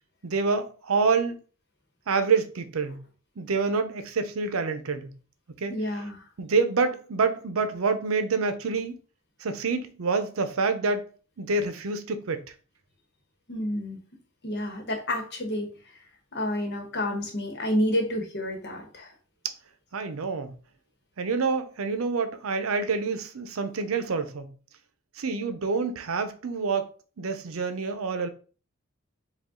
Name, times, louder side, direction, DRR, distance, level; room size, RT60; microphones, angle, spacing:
voice 1, 0.2-1.4 2.1-3.0 3.4-5.1 5.6-5.7 6.4-9.0 9.4-11.1 11.4-12.4 19.9-20.5 21.2-24.5 25.2-26.9 27.2-28.3, right 4 dB, 90° right, 0.6 m, -27 dB
voice 2, 5.7-6.2 13.5-14.0 14.4-15.7 16.3-19.1, left 1 dB, 55° left, 1.1 m, -29 dB
5.0 x 2.4 x 3.7 m
head